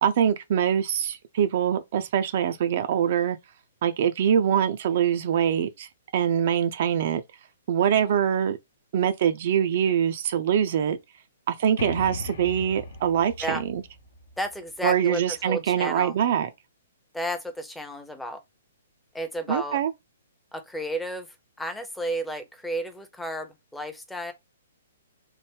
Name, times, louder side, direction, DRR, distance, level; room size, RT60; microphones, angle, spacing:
voice 1, 0.0-3.4 3.8-7.2 7.7-8.6 8.9-11.0 11.5-13.8 14.8-16.5 19.5-19.9, right 9 dB, 45° right, 0.4 m, -24 dB
sound 1, 11.8-15.4, left 3 dB, 55° left, 0.5 m, -39 dB
voice 2, 14.4-16.1 17.1-18.4 19.1-19.8 20.5-21.3 21.6-24.3, equal, 5° left, 0.6 m, -32 dB
3.1 x 2.1 x 3.3 m
figure-of-eight pair, 120°, 0 cm